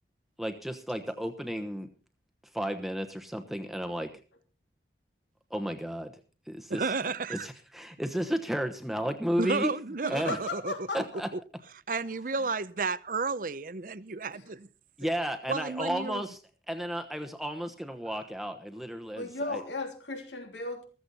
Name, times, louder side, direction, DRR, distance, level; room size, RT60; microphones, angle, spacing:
voice 1, 0.4-1.9 2.5-4.1 5.5-6.1 6.5-6.8 7.3-9.7 10.1-10.4 10.9-11.3 15.0-16.4 16.7-19.6, equal, ahead, 1.1 m, -33 dB
voice 2, 6.7-7.5 9.4-10.7 11.3-11.4 11.9-14.7 15.0-15.1 15.5-16.2, right 4 dB, 50° right, 0.7 m, -32 dB
voice 3, 10.0-11.2 14.3-14.4 19.1-20.8, left 2 dB, 90° left, 3.2 m, -36 dB
15.0 x 15.0 x 4.1 m
head